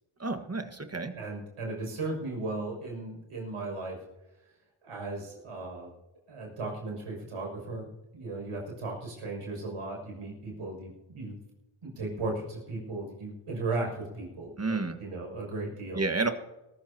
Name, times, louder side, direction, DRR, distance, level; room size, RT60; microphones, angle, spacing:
voice 1, 0.2-1.1 14.6-15.0 15.9-16.3, right 3 dB, 30° right, 7 dB, 1.7 m, -30 dB
voice 2, 1.1-4.0 4.8-5.9 6.3-11.4 11.8-16.0, right 2 dB, 85° right, -1 dB, 6.7 m, -36 dB
22.5 x 14.5 x 2.9 m, 1.0 s
cardioid pair, 55°, 50 cm